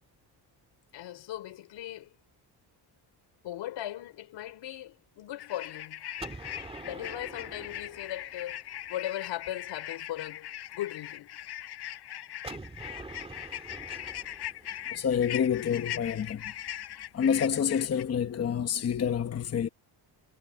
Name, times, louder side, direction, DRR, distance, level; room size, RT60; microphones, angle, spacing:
voice 1, 0.9-2.1 3.4-6.0 6.8-8.6 8.9-11.3, left 13 dB, 85° left, 5.1 m, -38 dB
sound 1, 5.4-18.0, left 12 dB, 60° left, 6.8 m, -40 dB
Gunshot gunfire, 6.2-9.0 12.4-16.3, right 3 dB, 15° right, 1.7 m, -46 dB
voice 2, 14.9-16.4 17.1-19.7, left 8 dB, 35° left, 1.1 m, -28 dB
cardioid pair, 155°, 43 cm